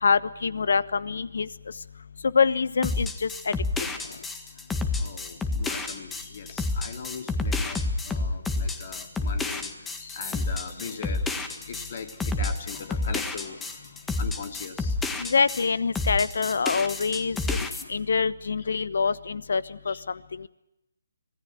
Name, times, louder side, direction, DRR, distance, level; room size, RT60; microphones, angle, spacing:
voice 1, 0.0-1.5 2.2-3.5 15.2-17.6 17.9-20.5, left 5 dB, 65° left, 19 dB, 1.1 m, -25 dB
sound 1, 2.8-15.7 15.9-17.8, left 3 dB, 5° left, 1.6 m, -29 dB
voice 2, 5.0-15.0 17.3-17.9 19.9-20.0, left 6 dB, 45° left, 7 dB, 2.7 m, -40 dB
25.5 x 17.5 x 9.2 m, 0.89 s
figure-of-eight pair, 150°, 0 cm